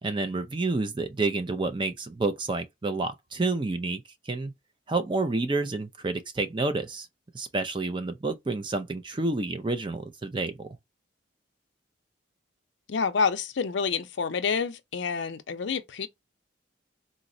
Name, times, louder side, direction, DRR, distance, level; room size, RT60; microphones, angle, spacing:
voice 1, 0.0-4.5 4.9-7.1 7.3-10.7, right 3 dB, 25° right, 0.4 m, -29 dB
voice 2, 12.9-16.1, left 5 dB, 70° left, 0.5 m, -28 dB
3.9 x 2.0 x 2.5 m
head